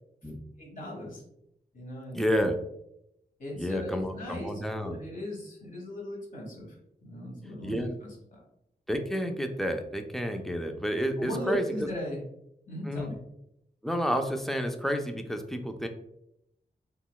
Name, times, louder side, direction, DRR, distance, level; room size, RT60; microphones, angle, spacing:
voice 1, 0.6-1.2 1.7-2.2 3.4-4.5 4.8-6.8 7.0-8.4 11.2-12.2 12.7-13.2, left 1 dB, 50° left, -3 dB, 1.1 m, -37 dB
voice 2, 2.1-2.5 3.6-5.0 7.6-7.9 8.9-11.6 12.9-13.1 13.8-15.9, equal, ahead, 5 dB, 0.3 m, -30 dB
3.7 x 2.2 x 2.3 m, 0.80 s
wide cardioid pair, 100°, 17 cm